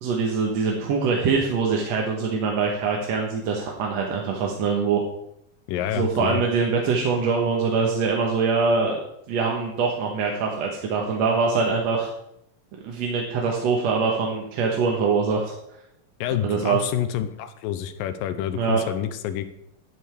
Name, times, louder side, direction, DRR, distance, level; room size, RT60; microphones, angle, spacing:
voice 1, 0.0-5.0 5.9-9.0 9.3-12.1 12.8-15.5 16.4-16.8 18.6-18.8, right 5 dB, 60° right, 0 dB, 2.0 m, -23 dB
voice 2, 5.7-6.4 16.2-19.5, left 10 dB, 90° left, 10 dB, 2.4 m, -28 dB
11.0 x 10.5 x 3.4 m, 0.77 s
omnidirectional pair, 3.9 m